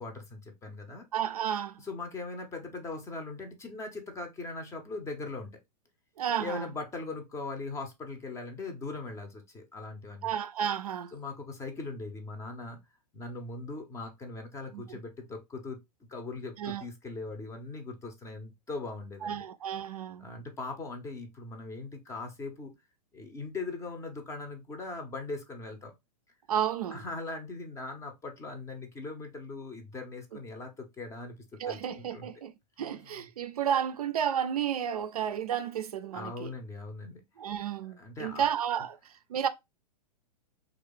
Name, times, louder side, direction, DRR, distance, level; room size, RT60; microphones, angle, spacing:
voice 1, 0.0-1.1 1.8-5.5 6.4-10.3 11.1-12.8 13.1-15.8 16.1-19.5 20.2-22.7 23.1-25.9 26.9-31.4 31.6-32.3 32.8-33.2 36.1-37.2 37.8-38.5, left 3 dB, 15° left, 0.7 m, -40 dB
voice 2, 1.1-1.8 6.2-6.7 10.2-11.1 14.7-14.8 16.6-16.8 19.2-20.3 26.5-27.0 30.3-30.4 31.6-36.5 37.4-39.0 39.3-39.5, right 9 dB, 65° right, 0.4 m, -32 dB
3.1 x 2.4 x 3.4 m
figure-of-eight pair, 105°, 21 cm